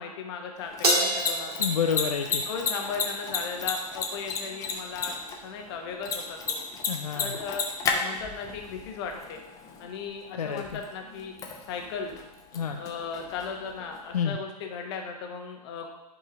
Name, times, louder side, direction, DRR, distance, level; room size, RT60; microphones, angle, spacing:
voice 1, 0.0-1.7 2.4-6.6 7.2-9.4 9.8-11.3 11.7-12.2 12.8-15.9, left 5 dB, 40° left, 2 dB, 1.3 m, -36 dB
Mechanisms, 0.6-14.2, left 5 dB, 15° left, 0.8 m, -34 dB
Crash cymbal, 0.8-3.4, right 2 dB, 70° right, 1.7 m, -29 dB
voice 2, 1.6-2.4 6.9-7.4 10.3-10.8 12.5-12.8 14.1-14.4, left 7 dB, 65° left, 4 dB, 0.6 m, -29 dB
11.0 x 5.5 x 2.6 m, 0.97 s
figure-of-eight pair, 110°, 20 cm